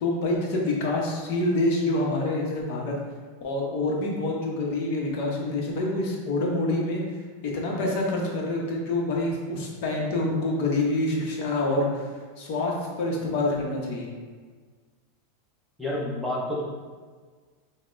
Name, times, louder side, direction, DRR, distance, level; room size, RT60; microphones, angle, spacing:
voice 1, 0.0-3.0 3.4-12.1 12.4-14.1, left 2 dB, 50° left, -1 dB, 0.8 m, -27 dB
voice 2, 15.8-16.6, left 1 dB, ahead, -5 dB, 0.6 m, -29 dB
5.6 x 2.1 x 2.5 m, 1.5 s
supercardioid pair, 165°, 0 cm